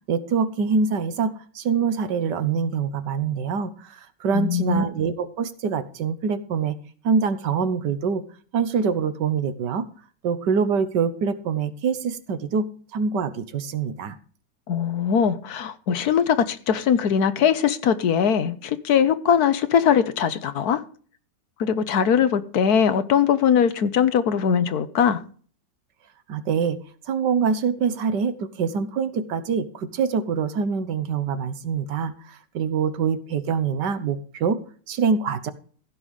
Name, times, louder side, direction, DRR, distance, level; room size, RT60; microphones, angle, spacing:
voice 1, 0.1-6.8 7.0-8.2 8.5-9.9 10.2-12.7 12.9-14.2 26.3-26.8 27.1-34.6 34.9-35.5, right 6 dB, 75° right, 1.7 m, -25 dB
voice 2, 4.3-4.8 14.7-20.8 21.6-25.2, left 7 dB, 65° left, 1.4 m, -21 dB
15.0 x 5.5 x 6.5 m
omnidirectional pair, 1.9 m